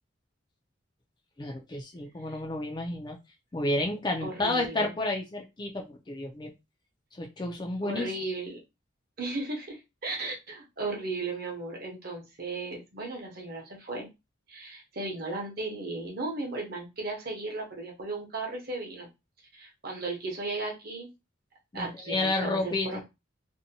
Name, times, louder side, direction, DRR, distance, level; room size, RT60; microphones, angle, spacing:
voice 1, 1.4-3.2 3.5-6.5 7.2-8.1 21.7-22.9, left 2 dB, 20° left, 2 dB, 0.4 m, -31 dB
voice 2, 4.2-4.9 7.8-8.6 9.2-14.1 14.5-19.1 19.5-21.1 21.7-23.0, right 2 dB, 50° right, 0 dB, 0.8 m, -36 dB
2.6 x 2.1 x 2.7 m, 0.24 s
head